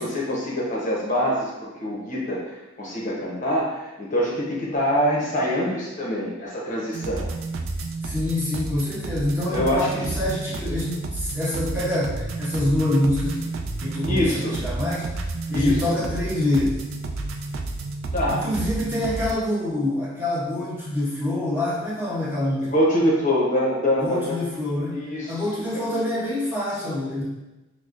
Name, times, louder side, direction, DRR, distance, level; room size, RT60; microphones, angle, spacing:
voice 1, 0.0-7.3 9.5-10.1 14.0-14.6 15.5-15.8 18.1-18.4 22.6-24.4 24.9-25.4 25.7-25.8, equal, 40° left, -5 dB, 0.8 m, -24 dB
sound 1, 6.9-19.3, right 2 dB, 85° right, 0.4 m, -31 dB
voice 2, 8.0-13.5 13.8-15.2 15.5-16.8 18.3-22.7 24.0-25.0 25.3-27.2, left 1 dB, 10° right, -11 dB, 1.3 m, -26 dB
5.8 x 2.0 x 2.5 m, 1.0 s
head